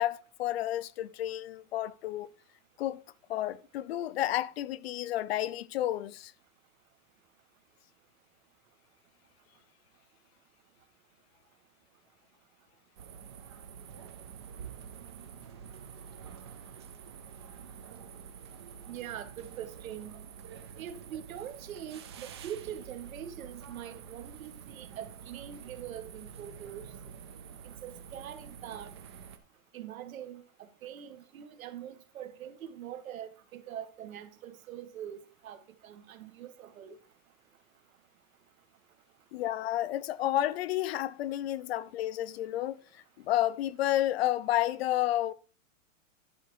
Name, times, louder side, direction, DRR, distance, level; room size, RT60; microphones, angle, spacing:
voice 1, 0.0-2.3 2.8-3.0 3.3-6.3 39.3-42.8 43.2-45.3, left 13 dB, 50° left, 0.5 m, -31 dB
sound 1, 13.0-29.4, right 7 dB, 20° right, 0.3 m, -48 dB
voice 2, 18.9-20.1 20.8-26.9 27.6-28.9 29.7-37.0, right 10 dB, 90° right, 1.6 m, -43 dB
11.0 x 4.9 x 4.6 m
supercardioid pair, 170°, 40 cm